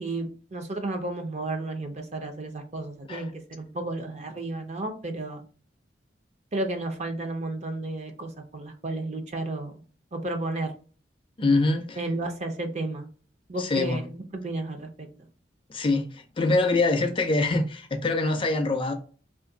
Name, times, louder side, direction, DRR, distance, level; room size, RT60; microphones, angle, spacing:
voice 1, 0.0-5.4 6.5-9.7 10.1-10.7 12.0-13.1 13.5-15.1, right 2 dB, 35° right, 0.5 m, -32 dB
voice 2, 11.4-12.0 13.6-14.0 15.7-18.9, left 2 dB, 30° left, 0.4 m, -24 dB
2.6 x 2.5 x 3.8 m
head